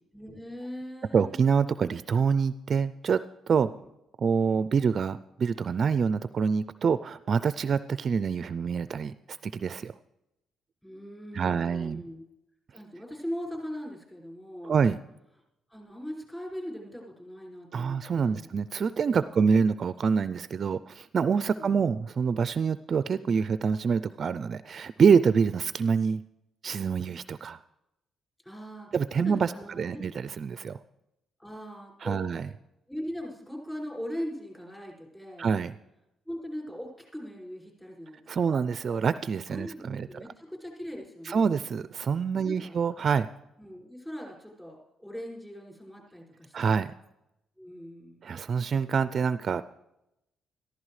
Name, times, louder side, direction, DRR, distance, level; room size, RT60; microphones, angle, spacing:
voice 1, 0.1-1.4 3.7-3.8 10.8-12.2 12.7-14.8 15.7-18.5 19.2-19.4 21.6-21.7 28.4-28.9 29.2-30.0 31.4-32.3 32.9-35.5 36.3-38.5 39.5-41.5 42.4-42.7 43.6-46.8 47.6-48.3, equal, 10° left, -1 dB, 5.8 m, -40 dB
voice 2, 1.1-3.2 3.5-3.7 4.2-9.9 11.3-12.0 14.6-15.0 17.7-26.2 26.6-27.6 28.9-30.8 32.0-32.5 35.4-35.7 38.3-40.1 41.2-43.3 46.5-46.9 48.2-49.6, right 6 dB, 50° right, 14 dB, 0.4 m, -26 dB
15.0 x 14.0 x 3.2 m, 0.87 s
cardioid pair, 90°, 0 cm